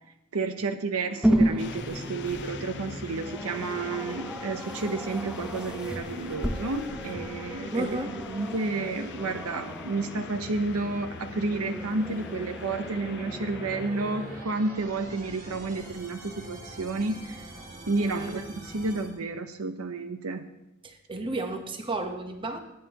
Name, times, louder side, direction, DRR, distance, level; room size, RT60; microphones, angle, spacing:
voice 1, 0.3-7.9 8.3-17.5 17.9-20.5, right 3 dB, 80° right, 8 dB, 0.8 m, -31 dB
sound 1, 0.9-19.1, equal, 40° right, 2.6 m, -46 dB
sound 2, 1.2-14.4, right 1 dB, 5° right, 0.6 m, -33 dB
sound 3, 1.6-13.9, left 5 dB, 55° left, 0.5 m, -43 dB
voice 2, 7.7-8.1 18.0-18.5 20.8-22.6, right 2 dB, 25° right, 5 dB, 1.0 m, -33 dB
18.5 x 8.8 x 3.0 m, 0.90 s
head